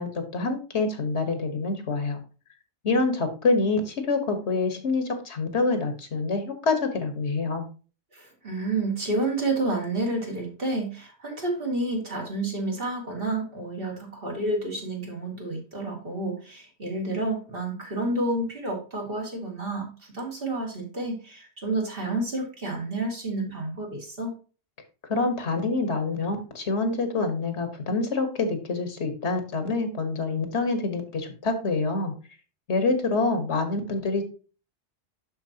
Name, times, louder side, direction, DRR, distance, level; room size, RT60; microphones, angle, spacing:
voice 1, 0.0-2.2 2.8-7.7 25.1-32.1 32.7-34.2, left 3 dB, 70° left, 7 dB, 1.6 m, -26 dB
voice 2, 8.1-24.3, right 2 dB, 50° right, -1 dB, 2.5 m, -30 dB
12.0 x 4.4 x 2.8 m, 0.36 s
omnidirectional pair, 1.2 m